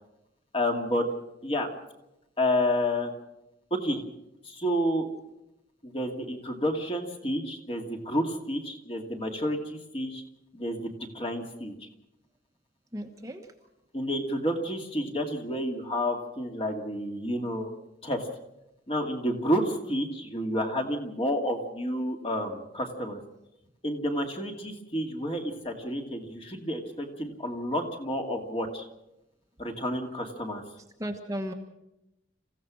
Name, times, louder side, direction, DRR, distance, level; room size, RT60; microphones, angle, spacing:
voice 1, 0.5-1.0 1.4-1.7 2.4-3.1 3.7-4.0 4.4-5.1 5.8-10.2 10.5-11.7 13.9-17.7 18.0-18.3 18.9-23.2 23.8-28.8 29.6-30.6, equal, 30° left, 3 dB, 2.4 m, -30 dB
voice 2, 12.9-13.5 31.0-31.5, equal, 15° right, 3 dB, 1.3 m, -34 dB
27.5 x 16.0 x 6.3 m, 0.90 s
head